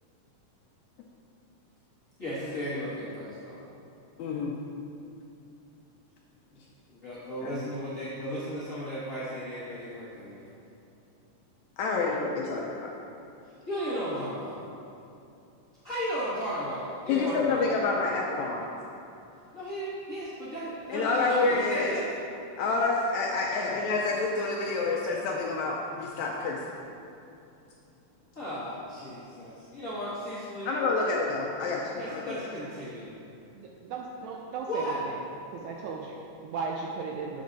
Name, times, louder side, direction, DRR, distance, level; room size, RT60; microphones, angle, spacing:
voice 1, 2.2-3.6 6.9-10.5 13.7-14.6 15.8-17.7 19.5-22.1 28.3-30.7 31.9-33.1 34.7-35.0, equal, 50° left, -12 dB, 0.9 m, -35 dB
voice 2, 4.2-4.5 7.4-7.6 11.8-12.9 17.1-18.7 20.9-21.9 22.6-26.7 30.6-32.5, left 4 dB, 80° left, -1 dB, 1.7 m, -28 dB
voice 3, 33.5-35.2 35.5-37.4, right 4 dB, 80° right, -1 dB, 1.7 m, -36 dB
8.3 x 5.2 x 3.9 m, 2.7 s
omnidirectional pair, 3.7 m